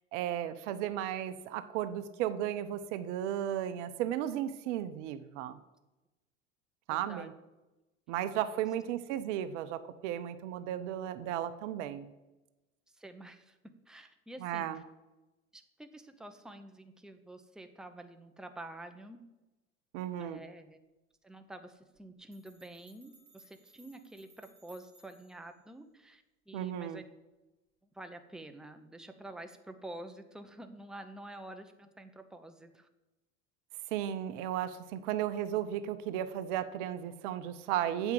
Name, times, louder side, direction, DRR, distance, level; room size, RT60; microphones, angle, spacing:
voice 1, 0.1-5.6 6.9-7.3 8.1-12.1 14.4-14.8 19.9-20.4 26.5-27.0 33.9-38.1, right 11 dB, 60° right, 12 dB, 0.7 m, -34 dB
voice 2, 6.9-7.3 8.3-8.6 12.9-13.6 13.9-14.8 15.5-19.2 20.2-20.8 21.2-27.0 27.9-32.9, right 1 dB, ahead, 7 dB, 0.8 m, -48 dB
sound 1, 21.9-22.0 22.3-25.5, right 3 dB, 25° right, 3.1 m, -62 dB
7.9 x 5.7 x 7.5 m, 1.0 s
hypercardioid pair, 75°, 40 cm